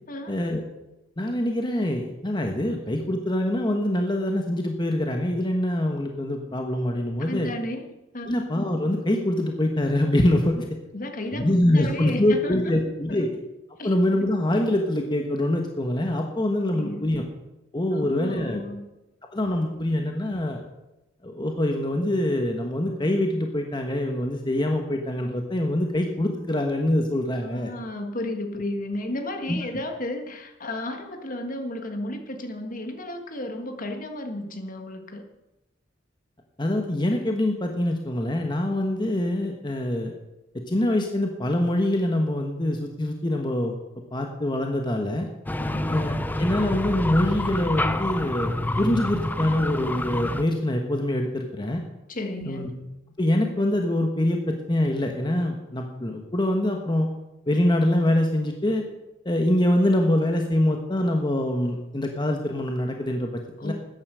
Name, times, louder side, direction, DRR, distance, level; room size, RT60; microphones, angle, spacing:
voice 1, 0.3-0.6 1.2-7.5 8.3-10.6 11.3-13.3 13.8-17.2 17.7-18.6 19.3-20.6 21.2-27.7 29.5-29.6 36.6-40.1 40.7-43.7 44.1-45.3 45.9-51.8 52.5-52.7 53.2-57.1 57.5-58.8 59.2-63.7, left 1 dB, 25° left, 3 dB, 1.2 m, -24 dB
voice 2, 7.2-8.4 10.9-12.8 13.1-13.3 13.8-13.9 14.2-14.3 16.7-17.2 17.9-18.8 27.4-35.2 45.6-46.0 52.1-52.6 63.6-63.7, left 1 dB, 45° left, 6 dB, 1.6 m, -33 dB
sound 1, 45.5-50.4, left 1 dB, 10° left, 0.6 m, -28 dB
13.5 x 9.7 x 6.2 m, 0.97 s
head